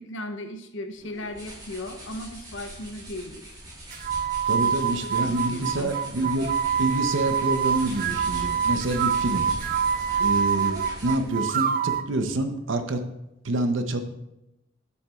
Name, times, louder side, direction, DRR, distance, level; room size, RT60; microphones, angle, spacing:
voice 1, 0.0-3.4 5.0-6.0, left 1 dB, 70° left, 6 dB, 0.7 m, -37 dB
sound 1, 1.0-11.4, right 1 dB, 20° right, 2.5 m, -41 dB
sound 2, 3.9-12.1, right 7 dB, 45° right, 0.3 m, -26 dB
voice 2, 4.5-6.5 6.8-9.5 10.2-13.0 13.4-14.0, right 2 dB, 75° right, 7 dB, 0.7 m, -27 dB
9.7 x 7.1 x 2.4 m, 0.90 s
head